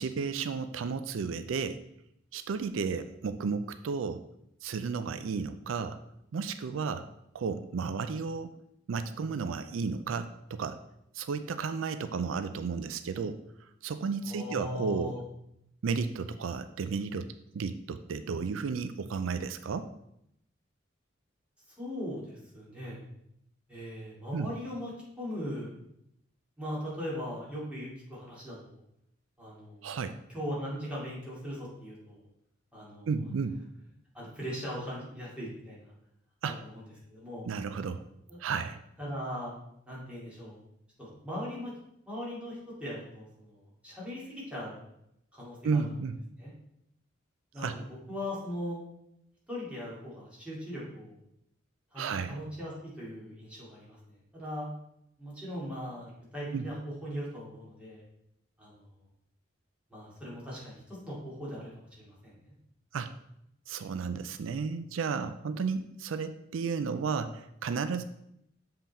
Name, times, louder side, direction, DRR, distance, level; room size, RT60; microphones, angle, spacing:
voice 1, 0.0-1.8 2.3-4.2 4.6-6.0 6.3-7.0 7.3-8.5 8.9-10.8 11.1-13.4 13.8-15.2 15.8-17.3 17.5-19.9 24.3-24.5 29.8-30.2 33.1-33.6 36.4-36.6 37.5-38.0 38.4-38.8 45.6-46.2 47.6-47.8 52.0-52.4 56.5-56.7 62.9-63.1 63.7-68.0, right 5 dB, 90° right, 11 dB, 0.4 m, -33 dB
voice 2, 14.2-15.2 21.8-23.0 23.7-24.9 25.2-25.7 26.6-28.8 29.4-29.9 30.3-32.3 32.7-33.1 34.1-35.9 36.4-36.8 37.1-37.5 38.3-38.4 39.0-39.5 39.9-40.6 41.0-41.7 42.0-44.8 45.3-45.8 46.4-46.5 47.5-48.8 49.5-51.1 51.9-54.7 55.2-58.0 58.6-58.8 59.9-62.3, equal, 5° right, -7 dB, 2.4 m, -39 dB
7.2 x 3.9 x 4.3 m, 0.78 s
head